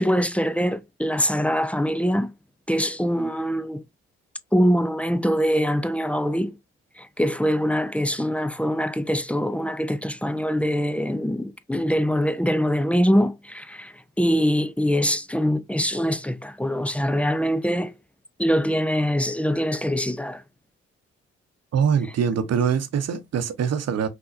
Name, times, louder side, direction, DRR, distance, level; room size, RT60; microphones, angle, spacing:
voice 1, 0.0-2.3 2.7-3.8 4.5-6.5 7.0-17.9 18.4-20.4, equal, 5° left, 0.5 m, -23 dB
voice 2, 21.7-24.1, right 7 dB, 50° right, 0.9 m, -23 dB
5.5 x 2.7 x 2.5 m
hypercardioid pair, 40°, 33 cm